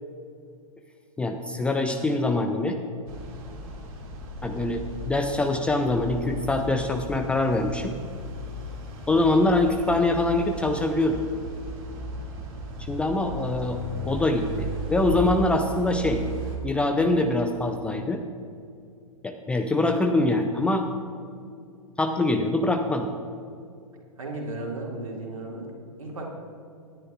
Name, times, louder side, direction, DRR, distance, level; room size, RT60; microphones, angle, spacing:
voice 1, 1.2-2.8 4.4-8.0 9.1-11.2 12.9-13.8 14.0-16.2 16.6-18.2 19.2-20.9 22.0-23.1, left 2 dB, 5° left, 5 dB, 0.3 m, -24 dB
sound 1, 3.1-16.6, right 1 dB, 45° right, 2.2 m, -36 dB
voice 2, 24.2-25.7 26.0-26.2, right 2 dB, 70° right, 0 dB, 2.1 m, -34 dB
19.0 x 9.8 x 2.4 m, 2.4 s
figure-of-eight pair, 105°, 18 cm